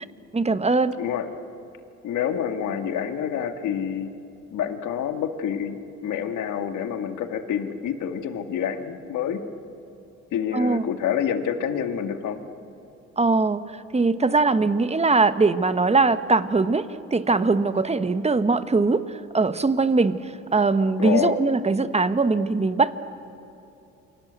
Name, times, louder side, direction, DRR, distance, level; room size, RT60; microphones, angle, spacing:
voice 1, 0.3-1.0 10.5-10.8 13.2-13.6 13.9-20.2 20.5-22.9, right 3 dB, 20° right, 12 dB, 1.2 m, -21 dB
voice 2, 2.0-4.1 4.5-9.4 10.3-12.4 21.0-21.4, left 8 dB, 80° left, 7 dB, 2.0 m, -27 dB
29.0 x 23.5 x 8.2 m, 2.9 s
cardioid pair, 90°, 30 cm